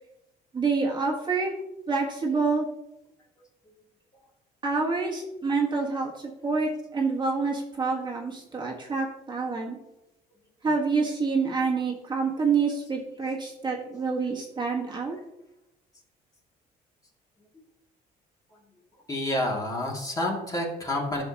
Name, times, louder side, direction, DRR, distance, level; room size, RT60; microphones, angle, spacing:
voice 1, 0.5-1.5 1.9-2.7 4.6-9.8 10.6-15.1, right 4 dB, 25° right, -1 dB, 1.6 m, -27 dB
voice 2, 19.1-21.2, left 1 dB, 20° left, -1 dB, 2.5 m, -29 dB
12.0 x 6.5 x 2.9 m, 0.87 s
cardioid pair, 110°, 17 cm